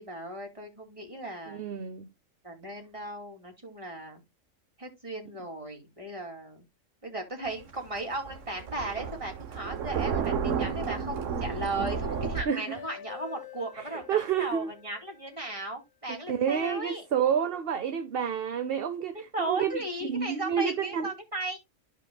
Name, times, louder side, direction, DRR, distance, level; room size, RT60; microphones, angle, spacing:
voice 1, 0.0-1.6 2.4-4.2 4.8-6.6 7.0-17.0 19.1-21.6, right 2 dB, 25° right, 2.8 m, -36 dB
voice 2, 1.5-2.1 11.8-11.9 12.5-12.8 13.8-14.7 16.1-19.8 20.1-21.1, right 8 dB, 50° right, 0.9 m, -29 dB
Thunder, 7.5-12.4, right 7 dB, 70° right, 1.2 m, -32 dB
sound 1, 10.4-15.5, left 4 dB, 40° left, 1.3 m, -44 dB
14.0 x 5.1 x 2.3 m
omnidirectional pair, 1.4 m